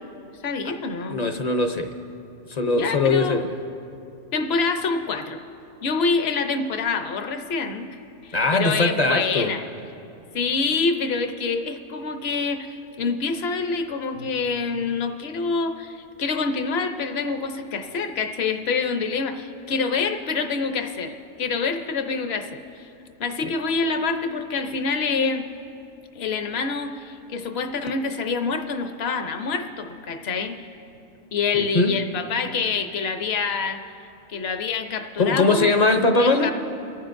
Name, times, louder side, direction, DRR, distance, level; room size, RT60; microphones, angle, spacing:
voice 1, 0.4-1.2 2.6-3.4 4.3-5.4 5.8-7.9 8.2-9.6 10.3-22.9 23.2-25.5 26.1-30.6 31.3-33.8 34.3-35.7 36.2-36.5, left 4 dB, 60° left, 6 dB, 1.0 m, -26 dB
voice 2, 1.1-1.9 2.5-3.5 8.3-9.5 14.2-14.3 31.5-32.0 35.2-36.5, left 3 dB, 40° left, 6 dB, 0.7 m, -21 dB
25.0 x 15.0 x 2.6 m, 2.8 s
omnidirectional pair, 1.3 m